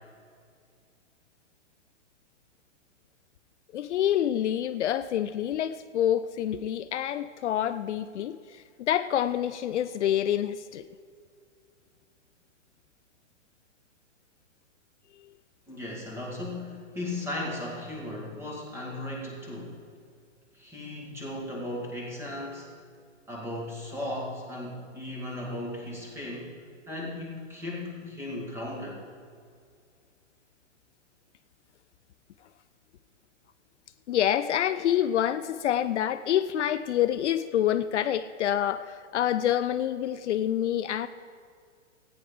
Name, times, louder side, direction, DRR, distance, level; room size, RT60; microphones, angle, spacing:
voice 1, 3.7-10.9 34.1-41.1, left 11 dB, 65° left, 12 dB, 0.5 m, -27 dB
voice 2, 15.7-19.8 20.5-22.7 23.3-26.6 26.9-29.0, left 1 dB, 5° right, -3 dB, 1.8 m, -36 dB
14.0 x 9.5 x 5.0 m, 2.2 s
hypercardioid pair, 160°, 38 cm